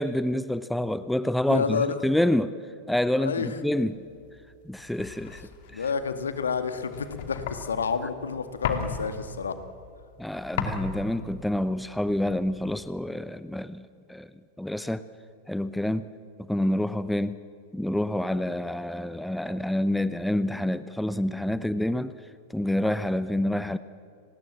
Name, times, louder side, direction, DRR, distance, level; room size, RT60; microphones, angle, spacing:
voice 1, 0.0-2.5 2.9-4.0 4.7-5.8 10.2-14.3 14.6-15.0 15.5-16.1 16.5-17.4 17.7-22.1 22.5-23.8, left 1 dB, 5° left, 14 dB, 0.8 m, -27 dB
voice 2, 1.5-2.0 3.2-3.5 5.7-9.6, left 5 dB, 75° left, 9 dB, 2.0 m, -29 dB
sound 1, 4.1-13.0, left 7 dB, 55° left, 2.7 m, -37 dB
30.0 x 20.0 x 7.5 m, 2.4 s
figure-of-eight pair, 95°, 0 cm